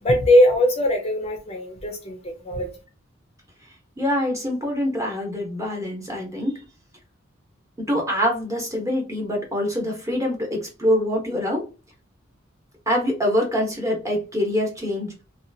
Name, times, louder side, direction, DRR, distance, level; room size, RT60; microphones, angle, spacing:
voice 1, 0.0-2.7, left 1 dB, 30° left, 0.5 m, -20 dB
voice 2, 4.0-6.6 7.8-11.7 12.9-15.1, equal, 15° right, 1.0 m, -24 dB
2.7 x 2.3 x 2.7 m
head